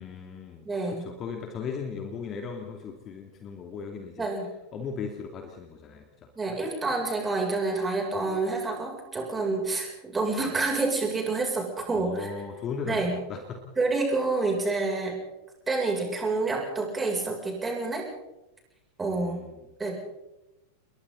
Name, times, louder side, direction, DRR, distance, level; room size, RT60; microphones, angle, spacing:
voice 1, 0.0-4.3 4.7-6.0 11.9-13.6 19.1-19.7, left 5 dB, 30° left, 3 dB, 2.9 m, -37 dB
voice 2, 0.6-1.1 4.2-4.5 6.4-12.3 12.8-13.2 13.8-15.2 15.7-18.1 19.0-19.4 19.8-20.0, right 3 dB, 15° right, 0 dB, 7.4 m, -28 dB
30.0 x 22.0 x 4.1 m, 0.93 s
figure-of-eight pair, 90°, 0 cm